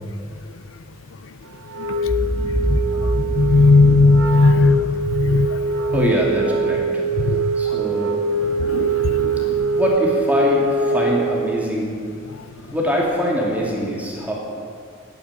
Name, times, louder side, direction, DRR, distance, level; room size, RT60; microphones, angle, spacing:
Wind instrument woodwind instrument, 1.7-11.4, right 3 dB, 90° right, 1.0 m, -23 dB
Boom, 2.0-6.3, equal, 50° right, 3.0 m, -26 dB
voice 1, 3.4-4.9 5.2-5.5 8.7-8.9, left 3 dB, 75° left, 14 dB, 0.6 m, -14 dB
voice 2, 5.9-6.8 7.3-8.2 9.7-12.0 12.7-14.3, equal, 10° right, -3 dB, 2.7 m, -22 dB
12.0 x 8.9 x 9.7 m, 2.2 s
head